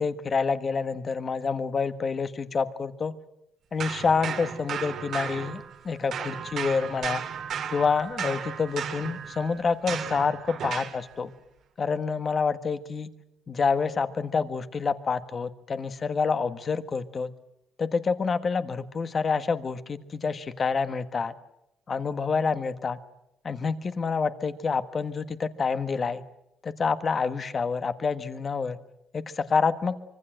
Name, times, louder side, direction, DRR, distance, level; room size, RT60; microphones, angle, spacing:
voice 1, 0.0-3.1 3.7-7.2 7.7-11.3 11.8-13.1 13.5-17.3 17.8-21.3 21.9-23.0 23.4-26.2 26.6-28.8 29.1-30.0, left 5 dB, 35° left, 10 dB, 1.5 m, -27 dB
sound 1, 3.8-5.9 6.1-11.0, right 8 dB, 60° right, 2.3 m, -35 dB
25.0 x 24.0 x 7.7 m, 0.84 s
cardioid pair, 120°, 0 cm